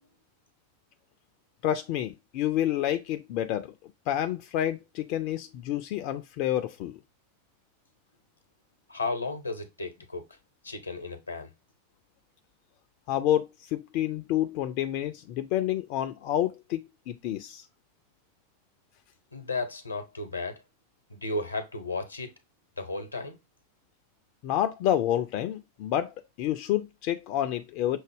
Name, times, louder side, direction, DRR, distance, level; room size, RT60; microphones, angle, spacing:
voice 1, 1.6-3.7 4.1-7.0 13.1-17.6 24.4-28.0, left 12 dB, 45° left, 0.4 m, -29 dB
voice 2, 8.9-10.2 10.6-11.5 19.3-20.6 21.1-22.3 22.8-23.4, left 3 dB, 80° left, 0.8 m, -34 dB
6.1 x 2.1 x 3.3 m
figure-of-eight pair, 90°, 0 cm